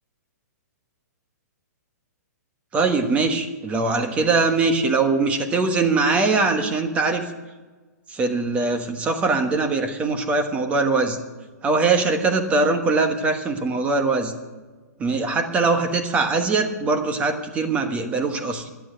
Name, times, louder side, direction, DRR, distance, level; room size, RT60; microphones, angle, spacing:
voice 1, 2.7-7.3 8.1-11.2 11.6-14.3 15.0-18.7, right 3 dB, 15° right, 6 dB, 1.3 m, -22 dB
12.5 x 10.5 x 7.8 m, 1.3 s
hypercardioid pair, 160°, 9 cm